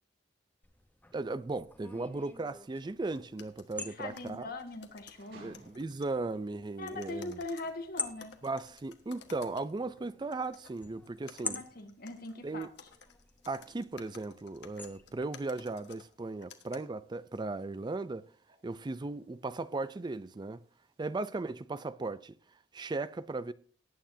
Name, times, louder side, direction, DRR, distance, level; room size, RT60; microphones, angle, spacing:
sound 1, 0.6-15.3, left 3 dB, 10° left, 0.9 m, -47 dB
voice 1, 1.1-4.5 5.3-7.4 8.4-11.6 12.4-12.7 13.5-18.2 18.6-20.6 21.0-22.3 22.7-23.5, right 3 dB, 25° right, 0.4 m, -37 dB
sound 2, 2.1-21.4, right 2 dB, 70° right, 6.1 m, -68 dB
sound 3, 2.8-2.9 3.1-6.2 6.9-10.0 10.3-16.8, left 5 dB, 75° left, 1.3 m, -54 dB
voice 2, 3.8-5.6 6.8-8.4 11.4-12.7, left 2 dB, 55° left, 1.6 m, -41 dB
19.0 x 9.0 x 2.7 m
head